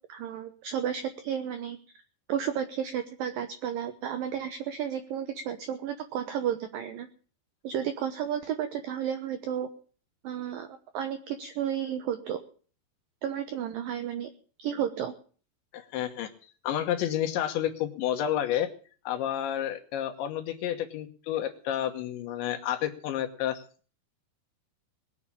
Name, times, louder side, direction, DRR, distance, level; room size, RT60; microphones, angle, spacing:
voice 1, 0.1-1.8 2.3-7.1 7.6-9.7 10.2-10.7 10.9-12.4 13.2-14.3 14.6-15.1, right 9 dB, 70° right, 9 dB, 2.3 m, -32 dB
voice 2, 15.7-16.3 16.6-18.7 19.1-23.6, left 11 dB, 85° left, 5 dB, 3.5 m, -30 dB
21.0 x 7.3 x 8.5 m, 0.42 s
omnidirectional pair, 5.2 m